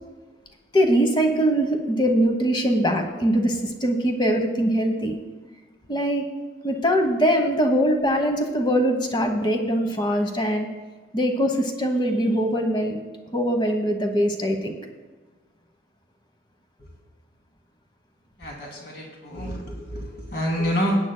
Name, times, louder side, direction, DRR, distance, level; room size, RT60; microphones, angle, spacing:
voice 1, 0.7-5.1 5.9-6.3 6.6-10.7 11.1-13.0 13.3-14.8, equal, 25° left, 4 dB, 1.0 m, -22 dB
voice 2, 18.4-21.0, equal, 55° left, -1 dB, 2.7 m, -27 dB
18.5 x 9.0 x 2.2 m, 1.3 s
head